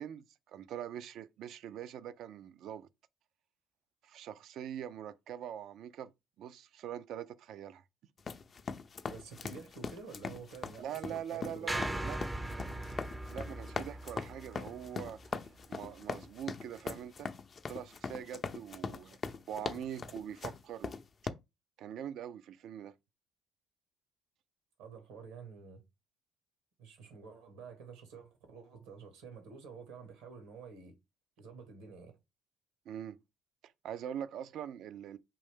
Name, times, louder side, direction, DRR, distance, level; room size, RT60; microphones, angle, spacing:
voice 1, 0.0-2.9 4.0-6.1 6.4-7.8 10.8-12.2 13.3-17.3 17.7-19.2 19.5-21.0 21.8-22.9 32.9-33.2 33.6-35.2, right 9 dB, 65° right, 0.4 m, -43 dB
sound 1, 8.2-21.3, left 5 dB, 40° left, 0.5 m, -41 dB
voice 2, 9.0-12.2 24.8-25.8 26.8-30.9 31.4-32.2, right 5 dB, 85° right, 1.5 m, -49 dB
sound 2, 11.7-16.0, right 1 dB, 15° right, 0.5 m, -40 dB
5.3 x 2.7 x 3.5 m
hypercardioid pair, 65°, 0 cm